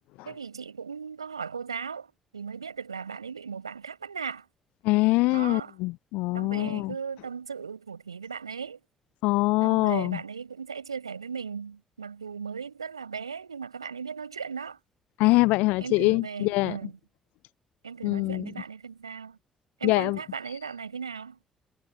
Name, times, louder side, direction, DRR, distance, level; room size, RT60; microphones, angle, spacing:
voice 1, 0.2-4.5 5.3-5.7 6.3-8.8 9.6-14.8 15.8-16.9 17.8-19.4 19.8-21.4, right 6 dB, 85° right, 6.2 m, -37 dB
voice 2, 4.8-6.9 9.2-10.2 15.2-16.8 18.0-18.5 19.8-20.2, left 22 dB, 65° left, 0.5 m, -24 dB
figure-of-eight pair, 45°, 3 cm